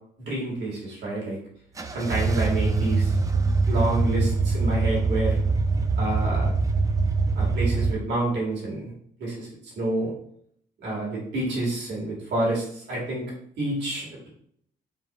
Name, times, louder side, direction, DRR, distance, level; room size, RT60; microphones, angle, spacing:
voice 1, 0.2-1.4 1.9-3.1 3.7-5.3 5.9-6.5 7.3-8.9 9.2-9.5 9.8-10.1 10.8-13.2 13.6-14.3, right 1 dB, 75° right, -5 dB, 1.7 m, -28 dB
sound 1, 1.8-7.9, right 3 dB, 20° right, 0.4 m, -23 dB
3.8 x 2.8 x 4.0 m, 0.66 s
cardioid pair, 105°, 18 cm